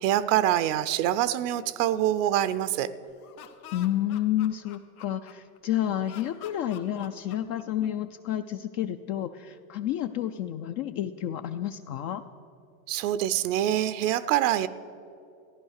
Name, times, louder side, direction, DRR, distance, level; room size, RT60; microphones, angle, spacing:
voice 1, 0.0-2.9 12.9-14.7, right 12 dB, 60° right, 14 dB, 0.7 m, -25 dB
Laughter, 3.1-5.6 6.0-8.1, left 10 dB, 85° left, 1.3 m, -48 dB
voice 2, 3.7-12.2, left 12 dB, 40° left, 8 dB, 0.5 m, -30 dB
14.5 x 10.5 x 6.5 m, 2.7 s
supercardioid pair, 130°, 43 cm